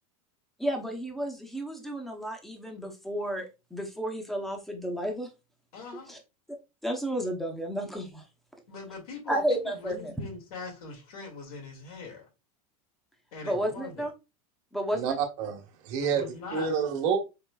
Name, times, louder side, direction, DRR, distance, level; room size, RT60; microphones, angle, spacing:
voice 1, 0.6-5.3 6.1-6.2 6.8-8.2 9.3-10.1 13.4-14.1 14.7-15.2, right 1 dB, ahead, 0.7 m, -32 dB
voice 2, 5.7-6.2 8.7-12.3 13.3-14.1 16.0-16.7, left 4 dB, 90° left, 2.1 m, -42 dB
voice 3, 14.9-16.2 16.5-17.2, right 6 dB, 55° right, 1.2 m, -28 dB
4.7 x 3.2 x 2.3 m
supercardioid pair, 150°, 18 cm